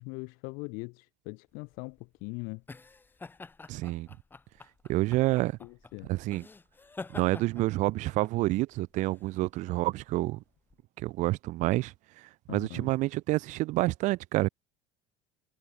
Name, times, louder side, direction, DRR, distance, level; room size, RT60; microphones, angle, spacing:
voice 1, 0.0-2.6 5.6-6.1 12.5-12.9, left 31 dB, 65° left, 2.3 m, -41 dB
sound 1, 1.6-10.8, left 3 dB, 15° left, 5.6 m, -48 dB
voice 2, 3.7-4.1 4.9-5.6 6.1-6.4 7.1-10.4 11.0-14.5, right 19 dB, 50° right, 1.4 m, -28 dB
cardioid pair, 145°, 15 cm